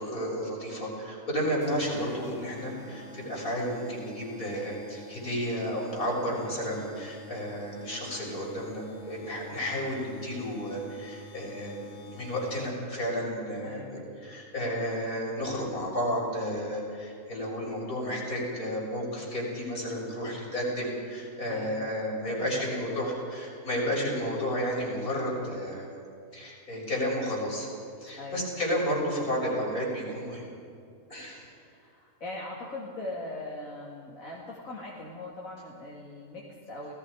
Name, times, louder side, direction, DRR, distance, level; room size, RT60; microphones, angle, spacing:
voice 1, 0.0-26.0 26.3-27.7 28.0-30.5 31.1-31.5, equal, 90° left, -3 dB, 6.9 m, -32 dB
sound 1, 1.6-13.0, left 1 dB, 50° left, 3.4 m, -48 dB
voice 2, 6.4-6.8 13.6-14.1 21.5-21.9 22.3-22.4 23.1-23.2 23.8-24.2 28.2-28.5 31.4-36.9, left 2 dB, 65° left, -4 dB, 3.1 m, -41 dB
29.0 x 19.0 x 5.0 m, 2.4 s
omnidirectional pair, 1.5 m